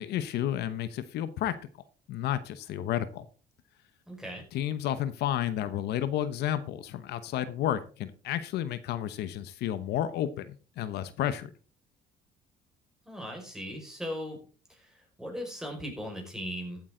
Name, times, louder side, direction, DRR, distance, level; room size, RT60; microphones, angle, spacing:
voice 1, 0.0-1.6 2.1-3.3 4.5-11.5, left 11 dB, 75° left, 13 dB, 0.9 m, -31 dB
voice 2, 4.1-4.4 13.1-14.4 14.7-16.8, equal, 5° right, 1 dB, 5.3 m, -38 dB
14.0 x 8.8 x 3.8 m, 0.38 s
cardioid pair, 110°, 17 cm